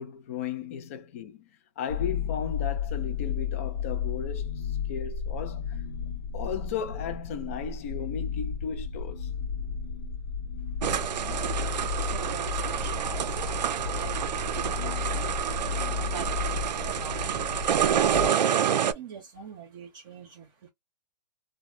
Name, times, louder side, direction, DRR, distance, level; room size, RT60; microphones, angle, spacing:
voice 1, 0.0-1.5 1.8-5.8 6.3-9.3, left 7 dB, 20° left, 0.3 m, -35 dB
sound 1, 1.9-18.3, left 6 dB, 60° left, 0.9 m, -33 dB
sound 2, 10.8-18.9, right 9 dB, 85° right, 0.5 m, -28 dB
voice 2, 11.2-11.7 12.0-15.3 15.9-20.7, right 6 dB, 30° right, 0.8 m, -44 dB
3.1 x 2.2 x 2.3 m
hypercardioid pair, 160°, 21 cm